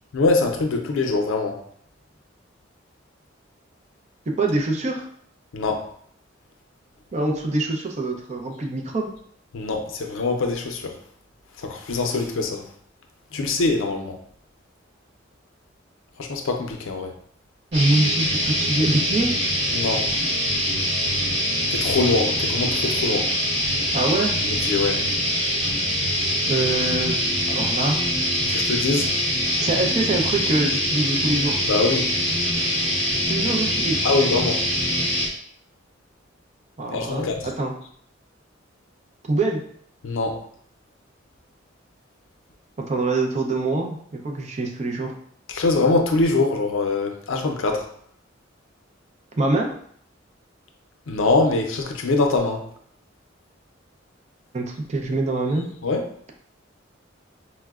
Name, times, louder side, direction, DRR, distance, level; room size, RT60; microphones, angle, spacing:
voice 1, 0.1-1.6 5.5-5.8 9.5-10.9 11.6-12.6 13.3-14.1 16.2-17.1 19.7-20.1 21.7-23.3 24.4-25.0 28.5-29.1 31.7-32.1 34.0-34.6 36.9-37.5 40.0-40.4 45.5-47.8 51.1-52.6 55.8-56.0, left 3 dB, 90° left, 4 dB, 0.5 m, -23 dB
voice 2, 4.4-5.0 7.1-9.1 17.7-19.3 23.9-24.3 26.5-28.0 29.6-31.6 33.3-34.0 36.8-37.7 39.3-39.6 42.8-45.1 49.4-49.7 54.5-55.7, right 2 dB, 35° right, 1 dB, 0.5 m, -24 dB
sound 1, 17.7-35.3, equal, 55° right, 1.4 m, -23 dB
4.5 x 2.1 x 2.3 m, 0.62 s
head